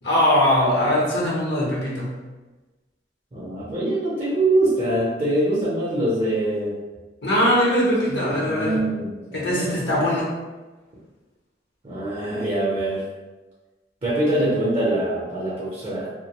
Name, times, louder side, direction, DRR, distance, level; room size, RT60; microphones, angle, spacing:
voice 1, 0.0-2.1 7.2-8.8 9.3-10.3, left 1 dB, 65° left, -5 dB, 0.8 m, -21 dB
voice 2, 3.3-6.7 8.1-9.8 11.8-13.0 14.0-16.1, right 1 dB, 30° right, -8 dB, 0.6 m, -24 dB
2.3 x 2.0 x 2.8 m, 1.2 s
head